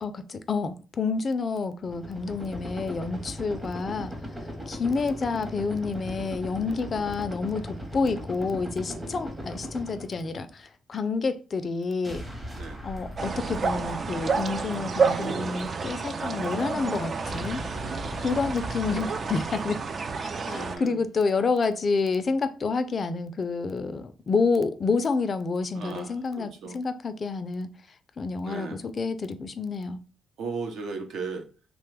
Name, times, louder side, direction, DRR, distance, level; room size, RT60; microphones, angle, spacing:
voice 1, 0.0-4.1 4.7-12.2 12.8-17.6 18.2-19.8 20.5-27.7 28.2-30.0, left 4 dB, 40° left, 0.3 m, -29 dB
sound 1, 1.8-10.6 12.0-15.4 17.2-19.5, equal, 20° right, 0.8 m, -39 dB
voice 2, 8.9-9.2 12.5-12.8 17.7-18.4 18.9-19.3 20.5-21.0 25.7-26.8 28.4-28.8 30.4-31.5, right 4 dB, 75° right, 0.7 m, -37 dB
sound 2, 13.2-20.8, right 5 dB, 45° right, 0.3 m, -30 dB
2.9 x 2.2 x 3.2 m
cardioid pair, 90°, 0 cm